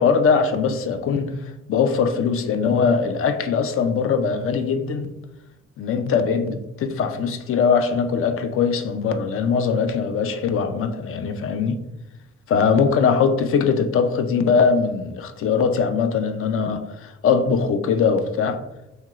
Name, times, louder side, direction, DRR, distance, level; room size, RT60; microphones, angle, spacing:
voice 1, 0.0-1.4 1.7-5.1 5.8-11.8 12.5-18.6, left 5 dB, 45° left, 0.4 m, -21 dB
2.9 x 2.9 x 2.4 m
cardioid pair, 90°, 30 cm